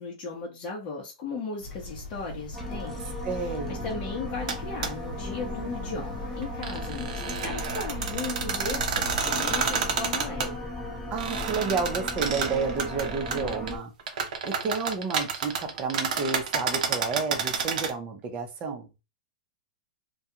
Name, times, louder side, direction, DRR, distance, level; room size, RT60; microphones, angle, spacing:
voice 1, 0.0-10.7, left 4 dB, 35° left, -3 dB, 0.8 m, -37 dB
sound 1, 1.6-9.2, left 1 dB, 70° left, 0.7 m, -41 dB
sound 2, 2.5-13.8, left 1 dB, 5° left, 0.9 m, -36 dB
voice 2, 3.2-3.8 11.1-13.9 14.4-18.9, right 5 dB, 30° right, 4 dB, 0.7 m, -31 dB
sound 3, 4.5-4.6 4.8-4.9 6.4-10.5 11.2-13.7 14.0-17.9, right 6 dB, 65° right, 0.7 m, -30 dB
2.3 x 2.3 x 2.8 m, 0.27 s
hypercardioid pair, 125°, 4 cm